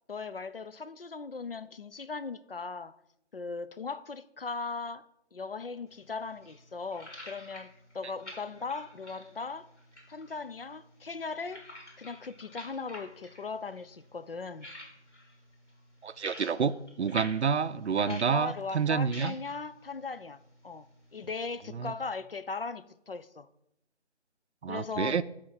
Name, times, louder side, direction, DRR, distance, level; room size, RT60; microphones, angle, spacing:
voice 1, 0.1-2.9 3.3-5.0 5.3-9.7 10.1-11.6 12.0-14.7 17.9-20.4 20.6-20.9 21.1-23.5 24.7-25.2, left 4 dB, 55° left, 13 dB, 0.4 m, -38 dB
sound 1, 5.9-21.6, left 1 dB, 85° left, 3.1 m, -50 dB
voice 2, 16.0-19.3 21.7-21.9 24.6-25.2, right 6 dB, 75° right, 15 dB, 0.5 m, -29 dB
7.3 x 4.3 x 5.8 m, 0.81 s
figure-of-eight pair, 165°, 34 cm